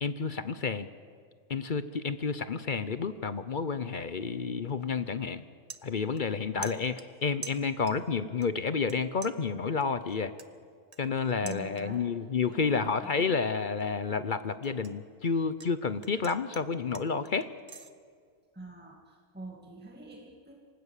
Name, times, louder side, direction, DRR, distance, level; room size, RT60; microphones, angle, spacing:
voice 1, 0.0-0.9 1.5-5.4 5.8-10.3 11.0-17.5, left 5 dB, 45° left, 12 dB, 0.7 m, -30 dB
sound 1, 4.8-5.0 5.3-6.4 6.6-8.1 8.4-9.0 9.2-12.1 12.5-12.9 13.3-15.7 16.0-17.9, right 5 dB, 30° right, 0.8 m, -47 dB
voice 2, 11.4-12.1 12.5-13.4 18.5-20.6, right 2 dB, 5° right, 0 dB, 2.0 m, -46 dB
27.0 x 19.0 x 8.3 m, 2.1 s
omnidirectional pair, 1.5 m